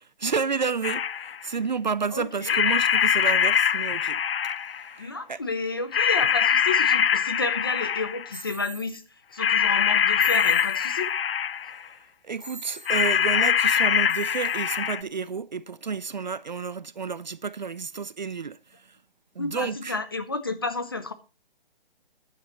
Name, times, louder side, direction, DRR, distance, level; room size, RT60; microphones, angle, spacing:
voice 1, 0.0-4.2 4.6-5.4 11.6-19.0 19.4-20.0, right 5 dB, 50° right, 0.5 m, -31 dB
sound 1, 0.8-1.4 2.5-4.9 5.9-8.4 9.4-11.8 12.9-15.0, left 8 dB, 75° left, 0.6 m, -23 dB
voice 2, 2.1-2.6 5.0-9.0 9.3-11.1 19.4-21.1, left 3 dB, 25° left, 0.7 m, -31 dB
sound 2, 8.3-9.0 10.2-11.1 12.4-13.1 14.1-14.7, right 1 dB, ahead, 2.5 m, -42 dB
15.0 x 9.6 x 3.0 m
hypercardioid pair, 175°, 30 cm